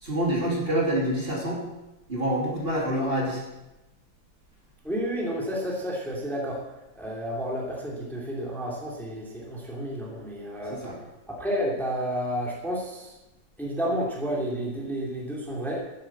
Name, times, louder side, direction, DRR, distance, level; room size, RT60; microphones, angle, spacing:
voice 1, 0.0-1.6 2.1-3.4 10.7-11.0, right 1 dB, 30° right, -2 dB, 3.2 m, -26 dB
voice 2, 4.8-6.6 7.0-10.8 11.3-13.1 13.6-15.9, equal, ahead, -2 dB, 2.5 m, -31 dB
11.5 x 9.9 x 7.3 m, 1.0 s
omnidirectional pair, 1.9 m